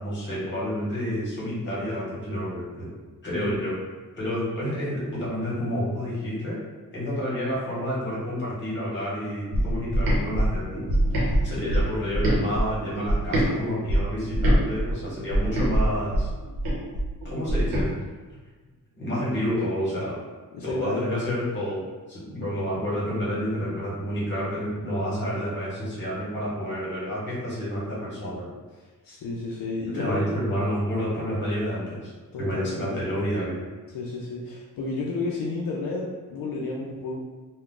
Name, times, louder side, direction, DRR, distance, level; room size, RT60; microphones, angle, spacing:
voice 1, 0.0-2.9 3.2-3.8 4.1-6.6 6.9-10.8 11.4-16.3 17.2-17.9 18.9-20.2 20.6-21.8 22.1-28.5 29.9-33.6, equal, 30° left, -7 dB, 1.1 m, -29 dB
sound 1, 9.5-13.5 13.9-17.9, right 1 dB, 85° right, 0.8 m, -24 dB
voice 2, 11.6-11.9 20.5-21.3 28.8-30.4 32.3-33.0 33.9-37.2, left 3 dB, 70° left, -3 dB, 0.5 m, -32 dB
2.3 x 2.2 x 3.7 m, 1.3 s
wide cardioid pair, 180°, 35 cm